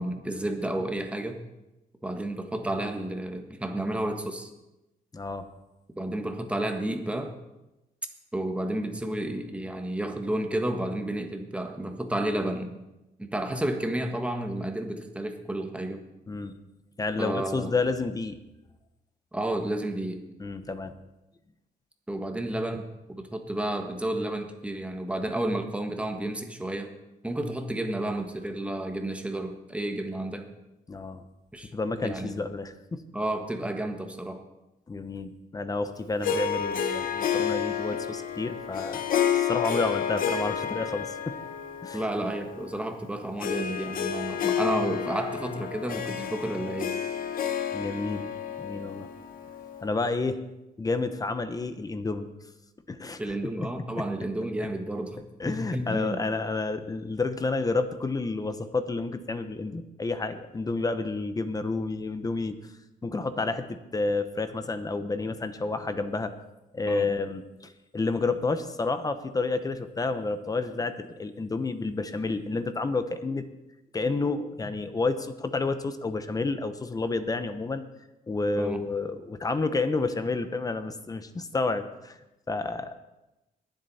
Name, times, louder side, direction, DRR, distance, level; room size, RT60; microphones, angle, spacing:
voice 1, 0.0-1.4 2.0-4.5 5.9-7.3 8.3-12.7 13.2-16.0 17.2-17.7 19.3-20.2 22.1-26.9 27.2-30.4 31.5-31.7 32.0-32.4 33.1-34.4 41.9-47.0 53.2-56.2 66.9-67.1 78.6-78.8, right 1 dB, 10° right, 5 dB, 1.5 m, -31 dB
voice 2, 5.1-5.5 16.3-16.6 17.0-18.4 20.4-20.9 30.9-31.2 31.7-33.0 34.9-39.0 39.3-41.4 41.8-42.0 47.7-48.3 48.6-49.1 49.8-50.4 50.8-52.3 52.9-53.2 53.6-53.7 55.4-62.6 63.0-66.3 66.7-73.4 73.9-77.8 78.3-82.2 82.5-83.0, left 3 dB, 25° left, 10 dB, 0.9 m, -30 dB
Harp, 36.2-49.9, left 8 dB, 65° left, 0.9 m, -30 dB
21.0 x 7.7 x 4.2 m, 0.96 s
cardioid pair, 120°, 16 cm